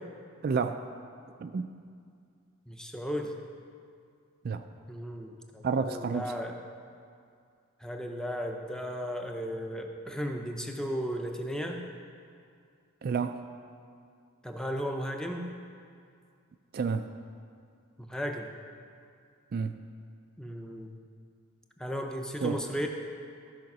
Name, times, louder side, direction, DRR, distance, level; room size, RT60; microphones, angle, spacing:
voice 1, 0.4-0.8 1.4-1.7 4.4-4.6 5.6-6.3 13.0-13.4 16.7-17.1 19.5-19.8 22.4-22.6, right 5 dB, 45° right, 8 dB, 0.3 m, -30 dB
voice 2, 2.7-3.4 4.9-6.6 7.8-11.8 14.4-15.5 18.0-18.5 20.4-20.9 21.8-22.9, equal, 5° left, 3 dB, 0.5 m, -35 dB
13.5 x 5.0 x 6.0 m, 2.3 s
head